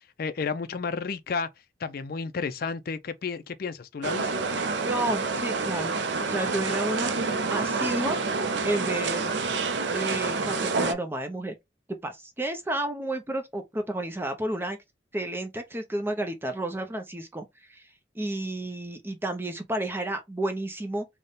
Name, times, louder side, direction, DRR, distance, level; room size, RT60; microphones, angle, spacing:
voice 1, 0.2-1.5 1.8-4.3, left 5 dB, 55° left, 0.4 m, -31 dB
sound 1, 4.0-10.9, right 4 dB, 75° right, 0.5 m, -28 dB
voice 2, 4.8-7.2 7.5-8.2 8.6-9.3 9.9-11.5 12.0-14.8 15.1-17.4 17.7-17.8 18.2-21.1, right 1 dB, 10° right, 0.5 m, -31 dB
3.5 x 2.1 x 3.9 m
head